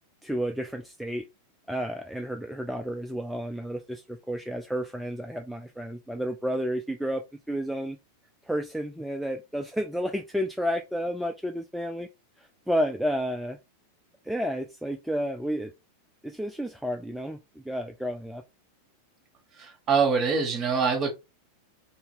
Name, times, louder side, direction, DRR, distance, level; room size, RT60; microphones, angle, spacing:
voice 1, 0.2-1.3 1.7-7.2 7.5-8.0 8.4-12.1 12.4-13.6 14.2-15.7 16.2-18.4, equal, ahead, 0.3 m, -31 dB
voice 2, 19.6-21.1, right 5 dB, 30° right, 1.2 m, -24 dB
2.7 x 2.6 x 3.6 m
figure-of-eight pair, 90°, 0 cm